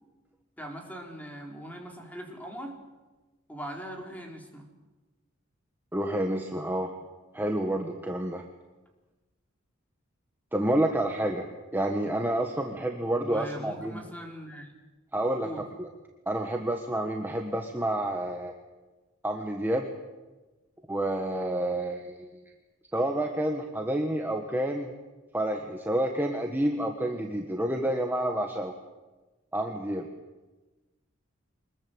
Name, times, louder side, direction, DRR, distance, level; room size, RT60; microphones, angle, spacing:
voice 1, 0.6-2.8 3.5-4.7 13.2-14.7 15.4-15.6, equal, 10° left, 1 dB, 3.9 m, -40 dB
voice 2, 5.9-6.9 7.3-8.4 10.5-11.5 11.7-14.0 15.1-15.5 15.8-15.9 16.3-18.5 19.2-19.9 20.9-22.3 22.9-24.9 25.3-28.7 29.5-30.1, right 1 dB, 10° right, 2 dB, 1.6 m, -29 dB
24.5 x 21.0 x 8.0 m, 1.2 s
head